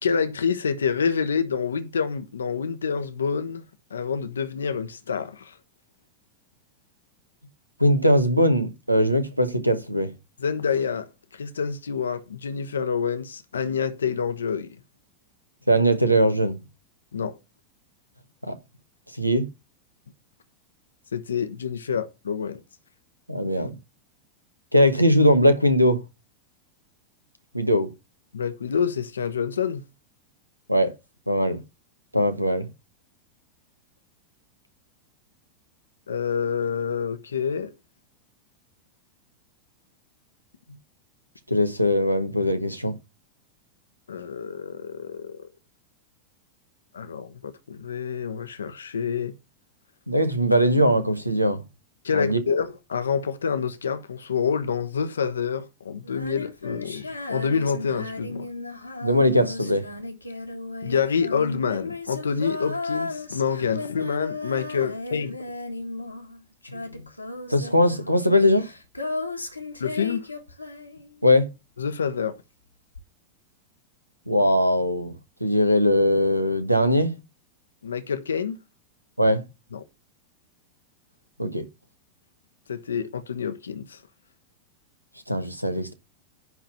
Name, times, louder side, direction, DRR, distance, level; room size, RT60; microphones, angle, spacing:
voice 1, 0.0-3.6 3.9-5.6 10.4-11.1 11.3-14.7 17.1-17.4 21.1-22.6 28.3-29.8 36.1-37.7 44.1-45.5 46.9-49.3 52.0-58.5 60.8-65.4 69.8-70.3 71.8-72.4 77.8-78.6 79.7-79.8 82.7-84.0, left 6 dB, 70° left, 1.0 m, -27 dB
voice 2, 7.8-10.1 15.7-16.6 18.4-18.6 19.2-19.5 23.3-23.7 24.7-26.0 27.5-27.9 30.7-30.9 31.3-31.6 32.1-32.7 41.5-42.9 50.1-51.6 52.1-52.4 59.0-59.8 67.5-68.7 71.2-71.5 74.3-75.1 75.4-77.2 79.2-79.4 81.4-81.6 85.3-85.9, equal, 90° right, 1.3 m, -20 dB
Female singing, 56.0-71.4 72.9-73.0, left 3 dB, 85° left, 1.8 m, -35 dB
11.0 x 3.8 x 7.0 m
figure-of-eight pair, 90°, 0 cm